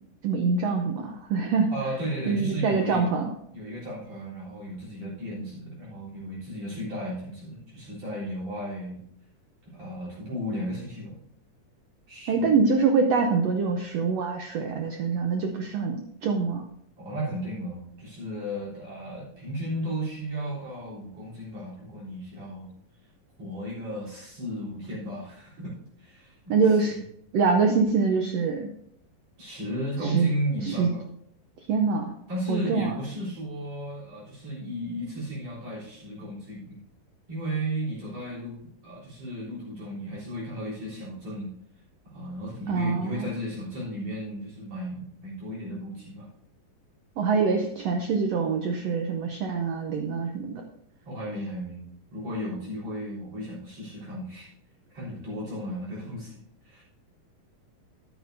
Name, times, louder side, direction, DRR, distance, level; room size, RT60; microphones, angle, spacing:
voice 1, 0.2-1.7 2.3-3.3 12.3-16.6 26.5-26.9 27.3-28.7 30.0-30.3 30.6-30.9 31.7-32.1 32.5-33.0 42.7-43.3 47.2-50.6, right 5 dB, 80° right, 3 dB, 1.5 m, -24 dB
voice 2, 1.7-3.1 3.5-9.0 9.6-11.2 12.1-12.6 17.0-22.7 23.4-27.0 29.4-31.0 32.3-36.8 37.3-38.6 38.8-41.5 42.1-46.3 51.0-51.8 52.1-54.5 54.9-56.4 56.6-56.8, equal, 50° right, -6 dB, 4.7 m, -34 dB
13.5 x 9.3 x 2.7 m, 0.72 s
omnidirectional pair, 3.9 m